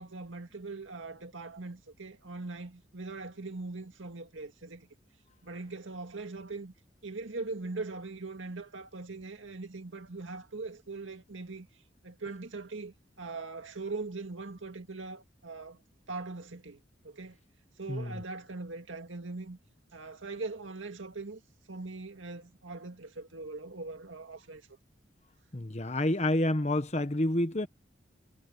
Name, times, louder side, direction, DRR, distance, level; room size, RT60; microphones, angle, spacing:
voice 1, 0.0-4.9 5.4-6.7 7.0-11.7 12.0-15.8 16.1-17.4 17.8-19.6 19.9-21.4 21.7-24.6, right 3 dB, 85° right, 2.0 m, -41 dB
voice 2, 25.5-27.7, left 1 dB, 35° left, 1.2 m, -28 dB
head